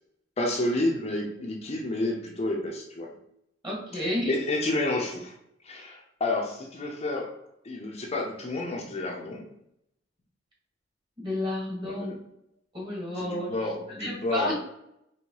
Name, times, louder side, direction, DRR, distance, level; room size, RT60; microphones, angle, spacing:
voice 1, 0.4-3.1 3.9-5.4 5.6-7.3 7.6-9.5 11.8-12.2 13.1-14.6, left 2 dB, 35° left, 0 dB, 0.6 m, -30 dB
voice 2, 3.6-4.3 11.2-12.1 12.7-13.5 14.0-14.6, left 1 dB, 25° right, -3 dB, 1.6 m, -31 dB
4.5 x 3.0 x 2.9 m, 0.79 s
head